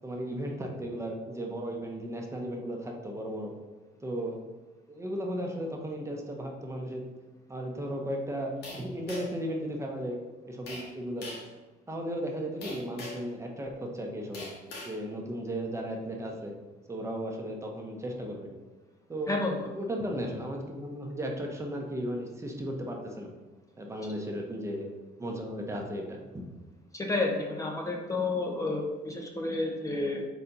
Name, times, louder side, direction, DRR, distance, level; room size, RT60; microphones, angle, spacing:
voice 1, 0.0-3.5 4.0-4.4 4.9-7.0 7.5-10.2 10.5-11.3 11.9-14.5 14.8-16.5 16.9-18.5 19.1-19.4 19.7-23.3 23.8-24.9 25.2-26.2, equal, 15° right, 0 dB, 1.0 m, -35 dB
sound 1, 8.6-9.5 10.7-10.9 11.2-11.5 12.6-13.3 14.3-15.0, left 3 dB, 80° left, 1.7 m, -41 dB
voice 2, 19.3-19.6 26.9-30.2, left 2 dB, 20° left, 0 dB, 0.9 m, -30 dB
4.3 x 4.1 x 5.4 m, 1.2 s
cardioid pair, 110°, 17 cm